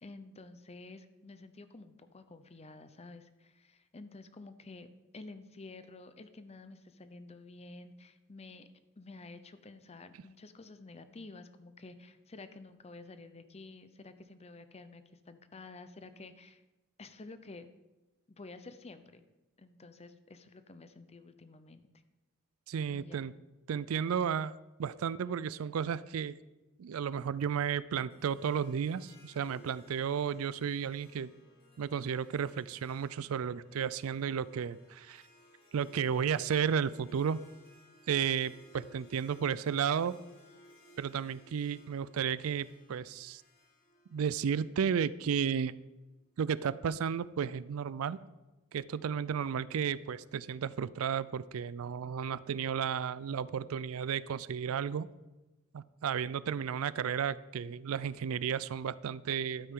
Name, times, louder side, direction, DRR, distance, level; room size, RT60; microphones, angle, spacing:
voice 1, 0.0-4.9 5.1-8.7 9.0-16.6 17.0-17.7 18.3-19.2 19.6-21.9 22.9-23.2, left 3 dB, 30° left, 11 dB, 0.6 m, -50 dB
voice 2, 22.7-23.3 23.7-24.5 24.8-26.4 26.8-31.3 31.8-35.2 35.7-37.4 38.1-40.1 41.0-43.4 44.1-45.7 46.4-48.2 48.7-55.1 55.7-59.7, right 7 dB, 75° right, 18 dB, 0.4 m, -33 dB
Harp, 28.1-45.4, equal, 45° left, 2.7 m, -61 dB
12.0 x 8.8 x 3.7 m, 1.1 s
head